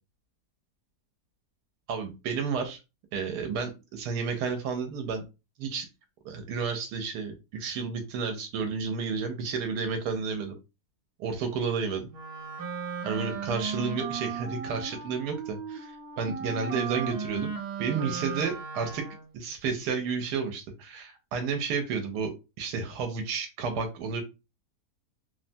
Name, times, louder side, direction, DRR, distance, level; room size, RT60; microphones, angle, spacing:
voice 1, 1.9-2.8 3.1-5.2 5.6-5.9 6.2-10.5 11.2-12.1 13.0-17.5 17.8-19.1 19.3-24.2, right 5 dB, 85° right, 5 dB, 1.2 m, -31 dB
Wind instrument woodwind instrument, 12.1-19.4, right 6 dB, 65° right, 1.2 m, -36 dB
3.1 x 2.1 x 2.6 m, 0.27 s
omnidirectional pair, 1.7 m